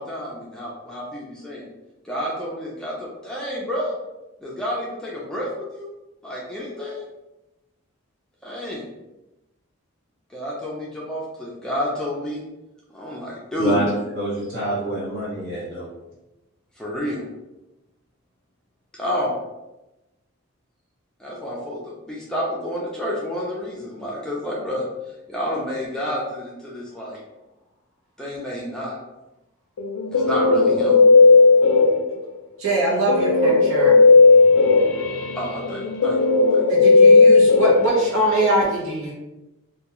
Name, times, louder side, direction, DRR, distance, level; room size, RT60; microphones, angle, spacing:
voice 1, 0.0-1.7 2.0-3.9 4.4-5.9 6.2-7.1 8.4-8.9 10.3-12.4 12.9-13.8 16.8-17.2 18.9-19.4 21.2-24.9 25.3-27.2 28.2-29.0 30.1-30.9 35.4-36.2 36.5-36.6, equal, 5° left, -5 dB, 0.4 m, -29 dB
voice 2, 13.6-15.9, right 1 dB, 55° right, -8 dB, 1.3 m, -26 dB
Guitar, 29.8-32.3 33.1-38.5, left 4 dB, 90° left, 0.4 m, -15 dB
voice 3, 32.6-33.9 36.7-39.1, right 2 dB, 80° right, -5 dB, 0.8 m, -22 dB
2.3 x 2.2 x 2.9 m, 0.97 s
head